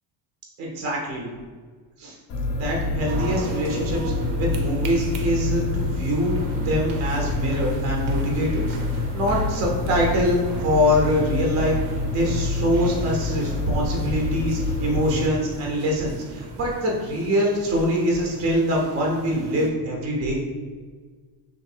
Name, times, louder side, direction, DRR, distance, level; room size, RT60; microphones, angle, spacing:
voice 1, 0.6-1.3 2.0-2.1 2.5-6.3 6.6-8.8 9.1-11.7 12.1-20.4, equal, 35° right, -1 dB, 0.6 m, -24 dB
sound 1, 2.3-15.3, left 3 dB, 35° left, 0.4 m, -27 dB
sound 2, 3.1-19.7, right 3 dB, 70° right, 0.7 m, -39 dB
3.4 x 2.5 x 4.2 m, 1.5 s
cardioid pair, 170°, 43 cm